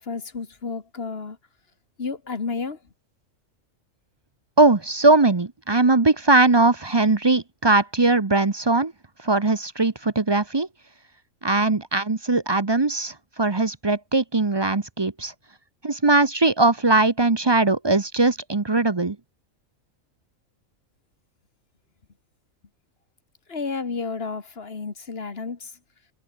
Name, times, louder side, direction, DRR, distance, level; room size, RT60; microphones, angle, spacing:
voice 1, 0.0-1.4 2.0-2.8 23.5-25.7, left 4 dB, 45° left, 1.9 m, -31 dB
voice 2, 4.6-8.9 9.2-10.7 11.4-15.3 15.8-19.2, right 3 dB, 25° right, 0.7 m, -20 dB
omnidirectional pair, 1.4 m